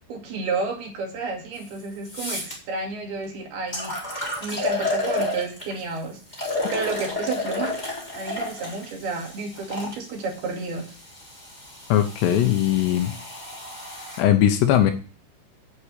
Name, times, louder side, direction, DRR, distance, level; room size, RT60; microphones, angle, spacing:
voice 1, 0.1-3.9 4.4-7.7 8.1-10.9, right 3 dB, 60° right, 2 dB, 4.1 m, -31 dB
sound 1, 1.6-1.7 2.1-2.5 3.2-3.3 3.7-5.8 6.3-9.9 10.8-14.2, left 2 dB, 10° left, 3.7 m, -31 dB
voice 2, 11.9-13.1 14.2-14.9, left 11 dB, 75° left, 8 dB, 2.9 m, -19 dB
8.6 x 8.0 x 8.3 m, 0.37 s
omnidirectional pair, 5.4 m